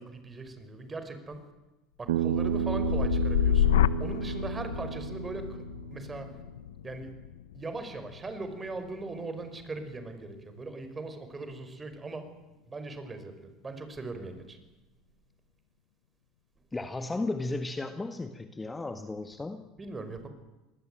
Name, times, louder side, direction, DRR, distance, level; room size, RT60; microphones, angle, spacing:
voice 1, 0.0-1.4 2.0-5.6 5.9-6.3 6.8-7.1 7.5-12.4 12.7-14.6 19.8-20.3, right 3 dB, 20° right, 9 dB, 5.6 m, -39 dB
sound 1, 2.1-10.1 10.6-11.1, left 12 dB, 85° left, 0.8 m, -30 dB
Bass guitar, 2.1-6.4, right 7 dB, 85° right, 1.5 m, -32 dB
voice 2, 16.7-19.6, left 2 dB, 15° left, 8 dB, 1.8 m, -34 dB
26.0 x 20.5 x 9.3 m, 1.0 s
hypercardioid pair, 90°, 0 cm